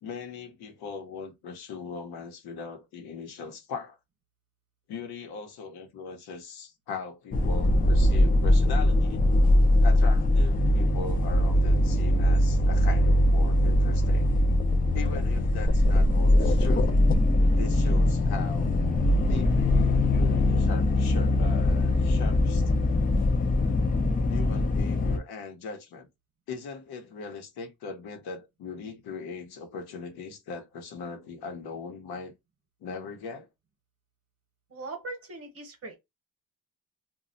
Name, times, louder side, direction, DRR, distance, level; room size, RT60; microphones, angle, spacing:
voice 1, 0.0-4.0 4.9-9.2 9.8-14.3 14.9-17.0 17.6-18.7 19.3-22.7 24.3-26.1 26.5-32.3 32.8-33.5, left 5 dB, 85° left, 0.9 m, -39 dB
sound 1, 7.3-25.2, left 1 dB, 25° left, 0.4 m, -22 dB
voice 2, 34.7-36.0, right 3 dB, 40° right, 1.0 m, -40 dB
2.3 x 2.0 x 3.7 m
cardioid pair, 125°, 38 cm